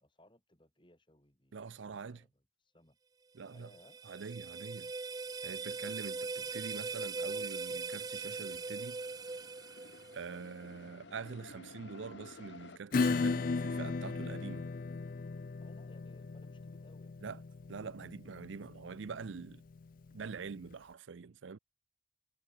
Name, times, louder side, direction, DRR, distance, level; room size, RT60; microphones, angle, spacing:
voice 1, 0.0-3.0 3.5-4.0 15.6-17.2, left 1 dB, 25° left, 5.3 m, -63 dB
voice 2, 1.5-2.2 3.3-3.7 4.0-4.9 5.4-9.0 10.1-14.7 17.2-17.4 17.7-19.6 20.1-21.6, right 5 dB, 75° right, 0.5 m, -45 dB
sound 1, 3.4-10.5, right 4 dB, 20° right, 0.4 m, -40 dB
sound 2, 5.0-5.1 5.4-12.8, left 3 dB, 60° left, 1.1 m, -56 dB
Acoustic guitar / Strum, 12.9-20.1, left 4 dB, 45° left, 0.4 m, -36 dB
head